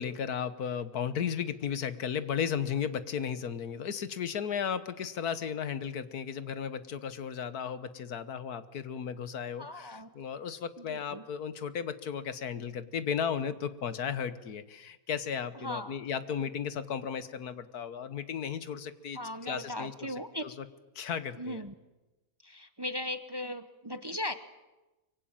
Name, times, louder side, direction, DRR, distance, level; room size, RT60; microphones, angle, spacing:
voice 1, 0.0-20.1 20.4-20.7 20.9-21.6, left 7 dB, 80° left, 13 dB, 1.7 m, -35 dB
voice 2, 9.6-10.1 10.8-11.2 15.6-16.0 19.1-20.4 21.4-21.7 22.4-24.3, left 1 dB, 20° right, 11 dB, 0.8 m, -38 dB
24.0 x 24.0 x 8.9 m, 1.1 s
omnidirectional pair, 1.6 m